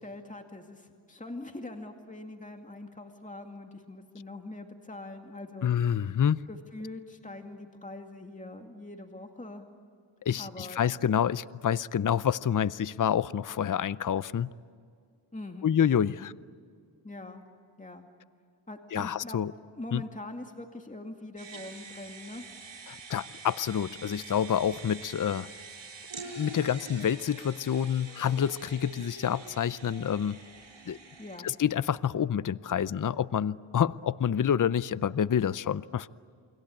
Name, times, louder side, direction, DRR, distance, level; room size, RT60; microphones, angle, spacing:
voice 1, 0.0-6.2 6.5-9.6 10.4-10.8 15.3-15.7 16.0-16.2 17.0-17.4 17.8-18.1 18.7-19.4 19.8-22.4 22.8-22.9 31.2-31.5, left 2 dB, 15° left, 4 dB, 2.3 m, -43 dB
voice 2, 5.6-6.4 10.2-14.5 15.6-16.3 18.9-19.5 19.9-20.0 22.9-25.5 26.4-30.4 30.9-31.0 31.4-36.1, left 8 dB, 40° left, 18 dB, 0.6 m, -28 dB
sound 1, 21.4-31.4, right 4 dB, 65° right, 7.0 m, -45 dB
29.0 x 22.0 x 8.8 m, 2.2 s
cardioid pair, 60°, 49 cm